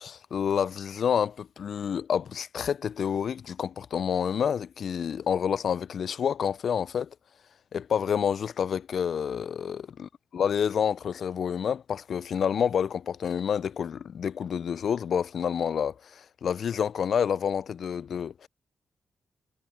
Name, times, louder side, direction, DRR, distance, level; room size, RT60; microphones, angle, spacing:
voice 1, 0.0-7.1 7.7-18.5, left 7 dB, 65° left, 0.3 m, -28 dB
supercardioid pair, 45°, 0 cm